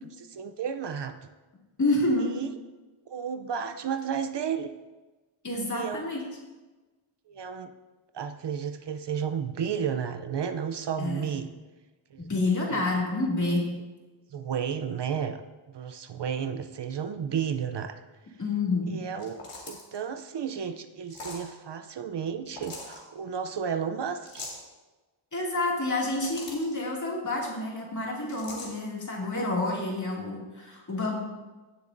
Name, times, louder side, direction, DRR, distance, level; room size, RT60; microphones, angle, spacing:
voice 1, 0.2-1.2 2.2-2.5 3.1-4.7 5.7-6.1 7.3-7.7 8.1-11.5 12.1-12.3 12.7-13.0 14.3-15.4 15.7-18.0 18.9-19.4 19.7-24.5, right 7 dB, 55° right, 9 dB, 0.6 m, -32 dB
voice 2, 1.8-2.3 5.4-6.2 11.0-11.3 12.2-13.7 18.4-19.0 25.3-31.2, left 2 dB, 35° left, -3 dB, 2.4 m, -28 dB
sound 1, 19.1-20.0 21.1-21.5 22.5-23.0 24.2-24.6 25.9-26.7 28.3-28.7, left 3 dB, 85° left, 2.5 m, -41 dB
16.5 x 7.0 x 2.6 m, 1.2 s
wide cardioid pair, 130°, 50 cm